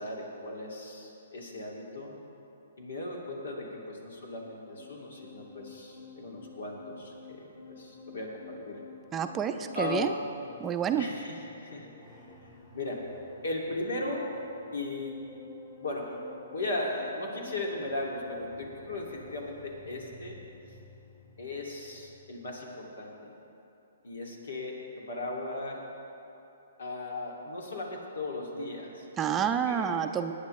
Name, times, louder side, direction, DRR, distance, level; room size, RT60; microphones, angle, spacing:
voice 1, 0.0-2.2 2.8-8.8 9.7-10.2 11.0-12.2 12.7-13.1 13.4-14.3 14.7-15.2 15.8-16.2 16.5-20.4 21.4-23.3 24.0-25.8 26.8-29.9, left 2 dB, 80° left, -1 dB, 2.3 m, -37 dB
sound 1, 4.1-22.6, left 3 dB, 40° left, 3.1 m, -52 dB
voice 2, 9.1-10.1 10.6-11.1 29.2-30.3, right 8 dB, 20° right, 7 dB, 0.5 m, -29 dB
19.5 x 9.5 x 3.2 m, 2.9 s
hypercardioid pair, 140°, 0 cm